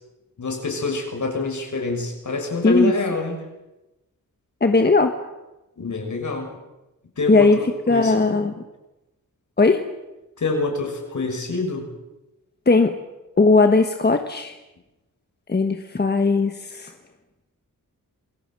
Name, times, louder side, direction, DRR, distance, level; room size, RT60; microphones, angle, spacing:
voice 1, 0.4-3.4 5.8-6.5 7.2-7.6 7.9-8.4 10.4-11.9, left 3 dB, 60° left, 3 dB, 6.4 m, -26 dB
voice 2, 4.6-5.1 7.3-8.5 9.6-9.8 12.7-13.0 13.4-14.5 15.5-16.9, left 3 dB, 30° left, 6 dB, 1.4 m, -18 dB
28.0 x 22.0 x 7.7 m, 1.0 s
wide cardioid pair, 170°, 34 cm